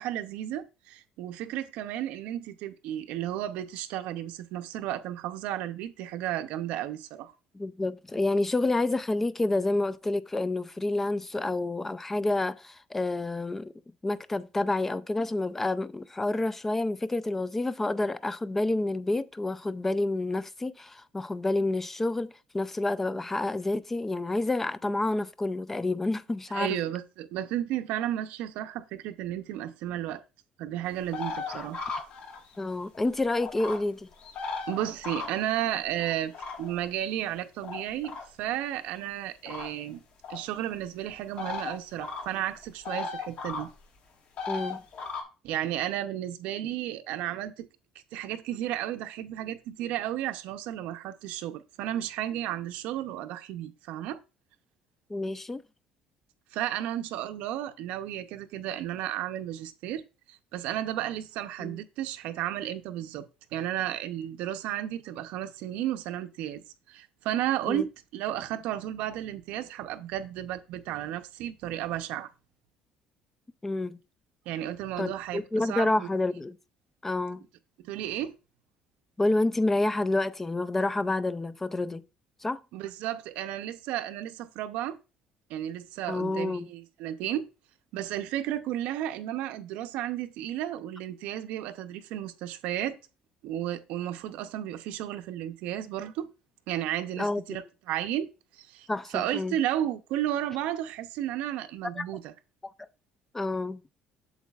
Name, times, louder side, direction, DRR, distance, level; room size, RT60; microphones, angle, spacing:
voice 1, 0.0-7.3 26.5-30.2 30.6-31.8 34.7-40.0 40.3-43.7 45.4-47.7 48.1-54.2 56.5-60.0 60.3-66.6 66.9-72.3 74.5-76.1 77.8-78.3 82.7-85.0 85.5-87.4 87.9-93.0 93.4-96.3 96.7-98.3 98.6-102.3, right 12 dB, 80° right, 0.7 m, -33 dB
voice 2, 7.5-13.7 14.0-26.8 32.6-34.1 44.5-44.8 55.1-55.6 61.6-61.8 67.7-67.8 73.6-74.0 75.0-76.6 77.0-77.4 79.2-82.0 82.4-82.6 86.1-86.7 97.2-97.4 98.9-99.6 102.0-102.1 102.6-102.7 103.3-103.8, left 2 dB, 10° left, 0.3 m, -29 dB
sound 1, 31.1-32.7 32.9-33.8 34.2-35.5 36.0-36.8 37.6-38.2 39.5-39.7 40.2-40.4 41.4-41.7 42.0-42.3 42.6-43.6 44.4-45.2, left 4 dB, 50° left, 1.6 m, -36 dB
8.2 x 7.1 x 2.4 m
cardioid pair, 145°, 2 cm